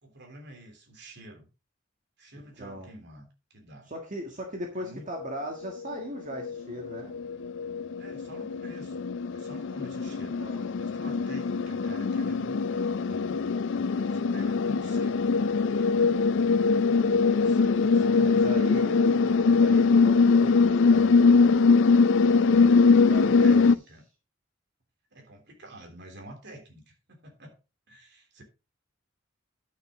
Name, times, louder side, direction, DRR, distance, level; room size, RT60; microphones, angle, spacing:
voice 1, 0.0-1.5 2.2-3.9 4.8-5.0 8.0-9.0 9.3-13.5 14.1-15.2 17.3-18.6 23.0-24.0 25.1-27.6 27.9-28.4, right 1 dB, 60° right, 3.3 m, -48 dB
voice 2, 2.6-2.9 3.9-7.1 10.4-10.7 17.8-21.1 22.5-23.6, equal, 40° right, 1.7 m, -39 dB
sound 1, 5.2-5.3 5.6-23.8, left 4 dB, 65° left, 0.5 m, -22 dB
11.5 x 6.7 x 3.8 m
head